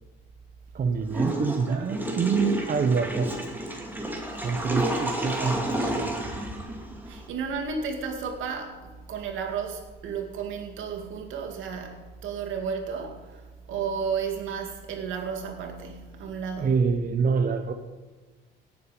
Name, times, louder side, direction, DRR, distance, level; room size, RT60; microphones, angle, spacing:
voice 1, 0.7-3.3 4.4-6.1 16.6-17.7, right 5 dB, 45° right, 0.9 m, -26 dB
Water / Toilet flush, 1.1-7.3, right 1 dB, 10° right, 2.3 m, -31 dB
voice 2, 4.4-5.6 7.0-16.7, right 6 dB, 80° right, 2.1 m, -33 dB
17.5 x 7.1 x 5.5 m
cardioid pair, 90°, 20 cm